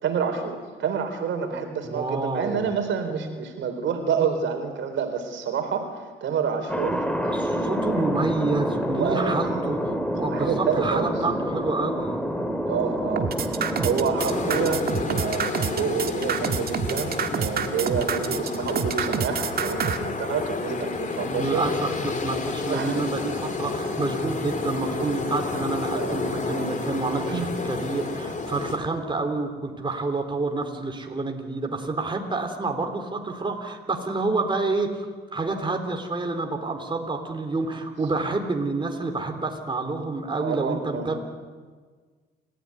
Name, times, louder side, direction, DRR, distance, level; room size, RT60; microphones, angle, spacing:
voice 1, 0.0-8.0 8.9-9.8 10.3-11.1 12.7-21.6 22.7-23.1 25.9-26.8 27.3-27.5 40.4-41.1, right 6 dB, 70° right, 6 dB, 4.1 m, -28 dB
voice 2, 1.8-2.7 7.2-9.9 10.2-12.2 21.2-41.2, right 3 dB, 25° right, 3 dB, 3.6 m, -28 dB
Thunder, 6.7-14.8, equal, 5° left, 3.5 m, -28 dB
sound 1, 13.2-20.0, right 7 dB, 50° right, 1.9 m, -27 dB
sound 2, 14.2-28.8, left 3 dB, 40° left, 3.8 m, -30 dB
29.5 x 15.0 x 9.8 m, 1.5 s
cardioid pair, 90°, 20 cm